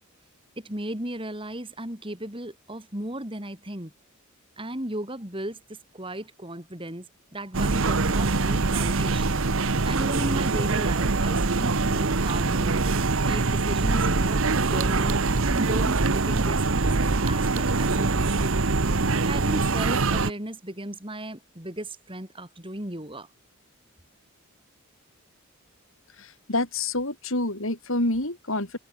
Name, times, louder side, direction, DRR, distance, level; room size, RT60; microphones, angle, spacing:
voice 1, 0.6-3.9 4.6-12.8 13.2-18.7 19.3-23.3, right 1 dB, 25° right, 3.9 m, -36 dB
sound 1, 7.5-20.3, right 3 dB, 65° right, 1.0 m, -23 dB
voice 2, 26.2-28.8, left 2 dB, 65° left, 5.0 m, -28 dB
open air
head